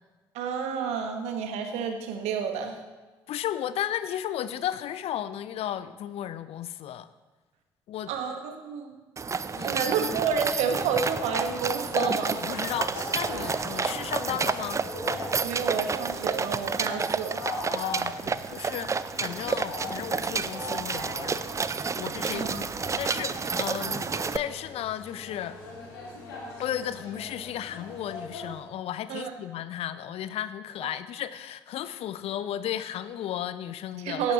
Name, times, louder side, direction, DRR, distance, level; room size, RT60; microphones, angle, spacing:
voice 1, 0.3-2.8 8.1-9.0 9.6-12.4 15.4-17.4 22.3-22.9 29.1-29.3 30.8-30.9 34.0-34.3, right 6 dB, 65° right, 5 dB, 1.2 m, -30 dB
voice 2, 3.3-7.1 7.9-8.1 9.4-10.1 12.3-14.8 17.7-21.5 21.9-22.7 23.0-25.6 26.6-34.2, left 11 dB, 55° left, 14 dB, 0.6 m, -34 dB
sound 1, 9.2-24.4, right 5 dB, 25° right, 0.5 m, -30 dB
sound 2, 10.6-28.6, left 2 dB, 75° left, 2.0 m, -40 dB
17.0 x 9.4 x 3.0 m, 1.2 s
figure-of-eight pair, 45°, 12 cm